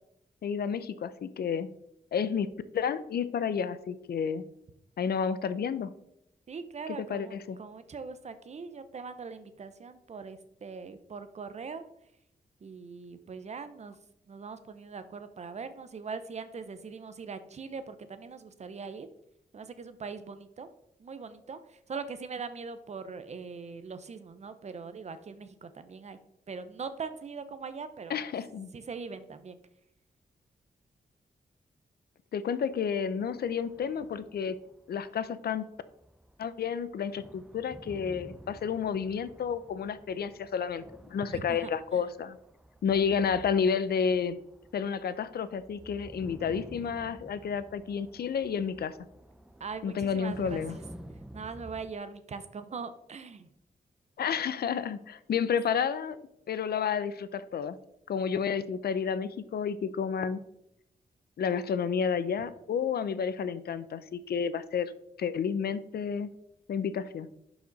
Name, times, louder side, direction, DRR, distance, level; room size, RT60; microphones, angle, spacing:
voice 1, 0.4-1.7 2.1-2.5 2.7-4.4 5.0-5.9 6.9-7.6 28.1-28.7 32.3-34.6 34.9-35.7 36.4-40.8 41.1-42.4 42.8-44.4 44.7-48.9 49.8-50.8 54.2-56.2 56.5-57.8 58.1-60.4 61.4-64.9 65.2-66.3 66.7-67.3, left 7 dB, 80° left, 14 dB, 0.6 m, -31 dB
voice 2, 6.5-11.8 12.6-14.0 14.3-19.1 19.5-20.7 21.0-26.2 26.5-28.2 28.7-29.6 41.3-42.0 49.6-50.6 51.3-53.5, right 5 dB, 45° right, 11 dB, 0.7 m, -41 dB
sound 1, 32.7-35.6 35.9-51.9, right 1 dB, 5° right, 0.5 m, -50 dB
11.5 x 5.0 x 4.0 m, 0.80 s
wide cardioid pair, 145°, 16 cm